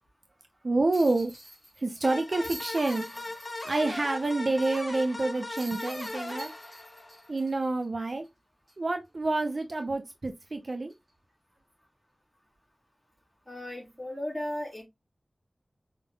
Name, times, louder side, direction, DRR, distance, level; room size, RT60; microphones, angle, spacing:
voice 1, 0.6-1.3 1.8-3.3 3.6-6.5 7.3-8.3 8.8-10.9, right 2 dB, 55° right, 0.5 m, -28 dB
sound 1, 0.9-4.1 4.5-4.6 5.6-8.3 8.7-8.8 10.9-11.1, right 1 dB, 25° right, 2.6 m, -47 dB
sound 2, 2.0-7.5, left 2 dB, 45° left, 1.2 m, -39 dB
voice 2, 13.5-14.8, left 1 dB, 5° left, 3.4 m, -35 dB
5.3 x 3.8 x 2.2 m
wide cardioid pair, 75°, 0 cm